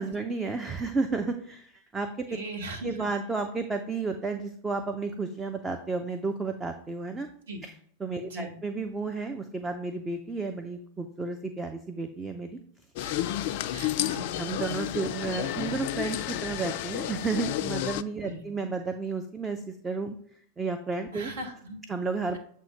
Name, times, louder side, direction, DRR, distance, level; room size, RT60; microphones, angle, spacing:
voice 1, 0.0-2.3 2.8-7.3 7.6-7.7 8.0-12.6 14.4-20.2 20.6-21.3 21.9-22.4, right 4 dB, 15° right, 6 dB, 0.5 m, -32 dB
voice 2, 2.3-3.1 7.5-7.7 8.2-8.6 13.0-14.4 15.4-15.7 18.2-18.4 21.1-21.8, right 1 dB, 65° right, 3 dB, 1.3 m, -40 dB
sound 1, 13.0-18.0, left 13 dB, 50° left, 0.3 m, -31 dB
7.5 x 2.7 x 5.1 m, 0.62 s
figure-of-eight pair, 90°, 0 cm